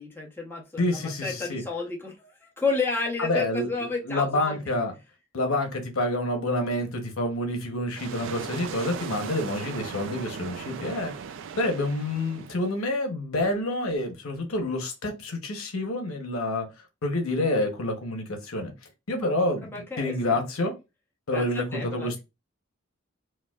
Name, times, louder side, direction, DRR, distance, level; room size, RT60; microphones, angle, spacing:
voice 1, 0.0-4.8 19.6-20.4 21.3-22.2, left 4 dB, 10° left, 0.9 m, -31 dB
voice 2, 0.8-1.6 3.2-3.7 4.0-4.9 5.3-11.1 11.6-16.7 17.0-18.7 19.1-19.7 20.0-20.7 21.3-22.2, left 1 dB, 85° left, 0.9 m, -28 dB
sound 1, 8.0-12.8, right 6 dB, 65° right, 0.4 m, -38 dB
4.6 x 2.1 x 2.3 m
head